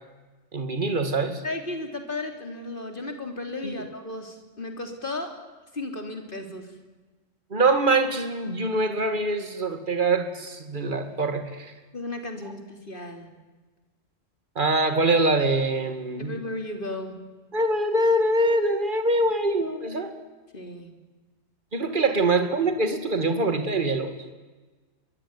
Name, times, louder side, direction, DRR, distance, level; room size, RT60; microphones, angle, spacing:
voice 1, 0.5-1.4 3.6-3.7 7.5-11.7 14.6-16.3 17.5-20.1 21.7-24.1, right 2 dB, 40° right, 7 dB, 2.5 m, -24 dB
voice 2, 1.4-5.3 5.7-6.7 11.9-13.3 16.2-17.2 20.5-20.9, left 2 dB, 45° left, 4 dB, 3.7 m, -34 dB
24.0 x 22.5 x 9.8 m, 1.3 s
omnidirectional pair, 1.3 m